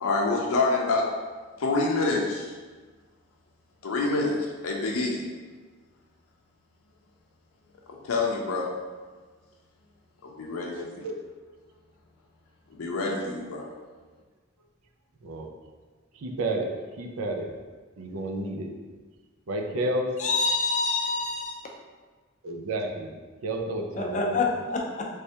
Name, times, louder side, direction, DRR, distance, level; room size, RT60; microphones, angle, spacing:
voice 1, 0.0-1.1 1.6-2.5 3.8-5.2 7.9-8.7 10.2-11.0 12.7-13.6, left 3 dB, 85° left, -1 dB, 0.5 m, -27 dB
voice 2, 10.8-11.2 15.2-15.5 16.2-16.7 17.0-17.5 18.0-18.7 19.5-20.1 22.4-23.1 23.4-24.4, right 1 dB, 85° right, 2 dB, 0.5 m, -31 dB
voice 3, 20.2-21.6 23.9-25.1, left 3 dB, 35° left, 0 dB, 0.5 m, -26 dB
3.3 x 3.2 x 2.8 m, 1.4 s
head